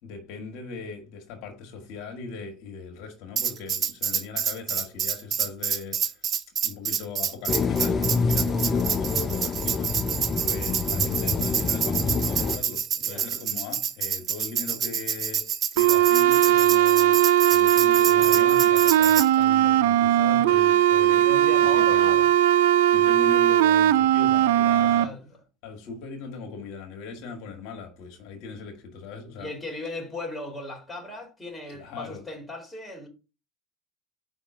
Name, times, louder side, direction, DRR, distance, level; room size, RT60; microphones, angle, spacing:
voice 1, 0.0-6.2 6.6-10.1 10.4-17.2 17.5-22.3 22.9-25.1 25.6-29.5 31.7-32.2, left 4 dB, 65° left, 1.6 m, -39 dB
Tambourine, 3.4-19.3, right 8 dB, 45° right, 0.7 m, -28 dB
sound 1, 7.5-12.6, left 4 dB, 30° left, 0.6 m, -26 dB
voice 2, 10.0-10.4 12.9-13.3 18.2-18.7 21.0-22.3 24.8-25.3 29.4-33.1, left 1 dB, 10° left, 2.4 m, -38 dB
sound 2, 15.8-25.0, right 13 dB, 80° right, 0.3 m, -19 dB
5.1 x 3.5 x 5.4 m
hypercardioid pair, 90°, 0 cm